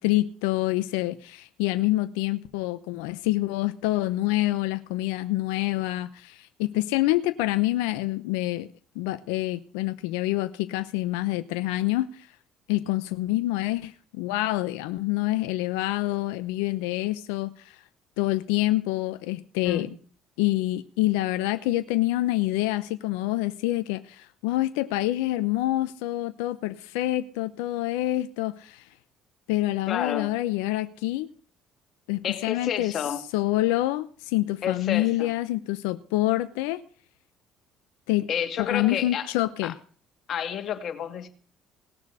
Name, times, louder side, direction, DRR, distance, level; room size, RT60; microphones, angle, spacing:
voice 1, 0.0-8.7 8.9-12.3 12.7-17.8 18.2-19.9 20.4-28.9 29.5-31.3 32.1-32.9 33.3-36.8 38.1-38.3 38.6-39.7, left 17 dB, 85° left, 0.8 m, -26 dB
voice 2, 29.9-30.3 32.2-33.2 34.6-35.3 38.3-39.3 39.6-39.7 40.3-41.3, left 8 dB, 60° left, 2.2 m, -30 dB
18.5 x 6.6 x 9.6 m
hypercardioid pair, 65°, 0 cm